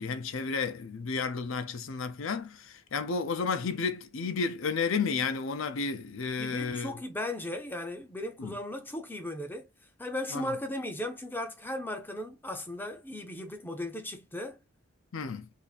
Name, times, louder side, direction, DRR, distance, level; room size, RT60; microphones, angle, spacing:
voice 1, 0.0-7.0 8.4-8.5 10.3-10.5 15.1-15.5, left 5 dB, 65° left, 0.5 m, -32 dB
voice 2, 6.4-9.7 10.0-14.6, left 1 dB, 10° left, 0.5 m, -36 dB
2.7 x 2.5 x 4.0 m
head